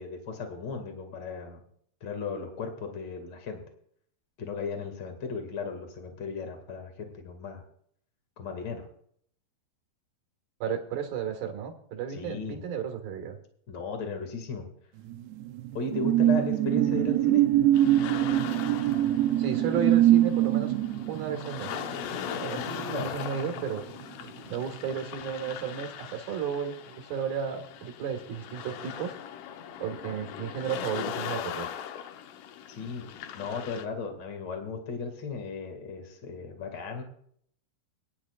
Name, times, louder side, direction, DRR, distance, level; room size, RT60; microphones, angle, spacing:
voice 1, 0.0-1.6 2.0-3.6 4.4-7.6 8.4-8.9 12.1-12.6 13.7-14.7 15.7-17.5 22.5-23.1 32.7-33.0 33.3-37.0, left 4 dB, 35° left, 4 dB, 1.9 m, -36 dB
voice 2, 10.6-13.4 16.2-16.3 19.4-20.7 21.1-21.7 22.4-23.8 24.5-29.1 29.8-31.7, right 7 dB, 65° right, 4 dB, 3.2 m, -33 dB
sound 1, 15.1-24.0 24.4-24.6, right 13 dB, 85° right, 2.7 m, -24 dB
sound 2, 17.7-33.9, left 9 dB, 90° left, 1.8 m, -40 dB
22.5 x 10.0 x 2.4 m, 0.64 s
omnidirectional pair, 4.6 m